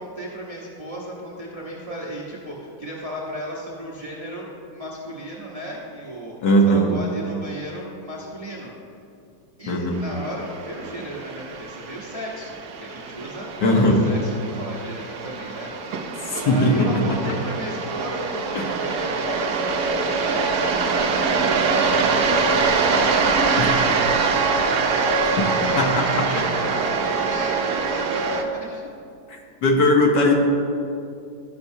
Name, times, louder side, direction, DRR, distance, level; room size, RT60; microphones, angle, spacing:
voice 1, 0.0-6.3 6.6-8.7 9.6-16.0 16.4-19.7 20.1-22.4 23.0-24.1 24.8-28.9, equal, 50° right, -5 dB, 0.4 m, -35 dB
voice 2, 6.4-6.9 9.7-10.0 13.6-14.0 16.2-17.1 18.5-18.7 23.6-23.7 25.8-26.4 29.3-30.3, left 1 dB, 60° left, 0 dB, 1.4 m, -19 dB
sound 1, 10.1-28.4, right 4 dB, 70° right, 0.9 m, -24 dB
13.0 x 5.9 x 2.7 m, 2.5 s
omnidirectional pair, 2.3 m